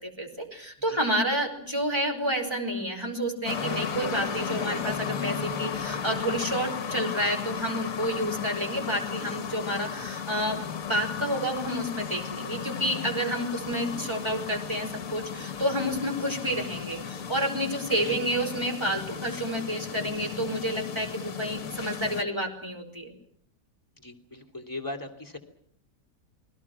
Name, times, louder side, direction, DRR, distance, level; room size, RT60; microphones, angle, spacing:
voice 1, 0.0-23.1, equal, 15° right, 3 dB, 4.9 m, -30 dB
sound 1, 3.4-22.2, left 7 dB, 55° left, 1.7 m, -35 dB
voice 2, 18.0-18.3 24.0-25.4, left 2 dB, 10° left, 3 dB, 2.7 m, -39 dB
28.5 x 22.0 x 6.1 m, 0.64 s
omnidirectional pair, 1.8 m